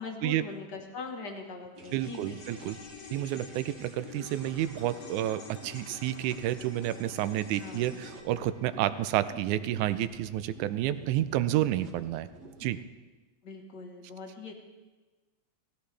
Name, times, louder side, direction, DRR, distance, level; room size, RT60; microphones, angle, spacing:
voice 1, 0.0-2.7 7.6-8.0 13.4-14.5, left 4 dB, 50° left, 2 dB, 1.4 m, -42 dB
sound 1, 1.7-12.8, right 3 dB, 50° right, 1.3 m, -50 dB
sound 2, 1.8-10.3 10.6-10.7, left 6 dB, 80° left, 2.9 m, -49 dB
voice 2, 1.9-2.8 3.1-12.3 12.6-12.8, right 13 dB, 85° right, 13 dB, 2.0 m, -30 dB
17.5 x 14.5 x 3.3 m, 1.2 s
omnidirectional pair, 3.5 m